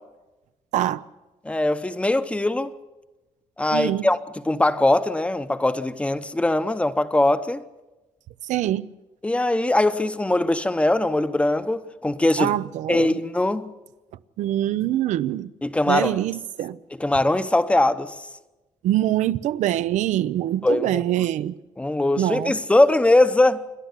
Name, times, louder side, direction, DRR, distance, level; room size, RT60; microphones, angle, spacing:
voice 1, 1.4-2.7 3.6-4.2 4.4-7.6 9.2-12.5 12.9-13.7 15.6-16.2 17.0-18.1 20.6-21.0 21.8-23.6, left 2 dB, 10° left, 0.7 m, -21 dB
voice 2, 3.7-4.1 8.5-8.9 12.4-13.2 14.4-15.5 15.9-16.8 18.8-21.5 22.2-22.5, right 13 dB, 90° right, 0.6 m, -24 dB
28.0 x 11.5 x 8.1 m
cardioid pair, 145°, 12 cm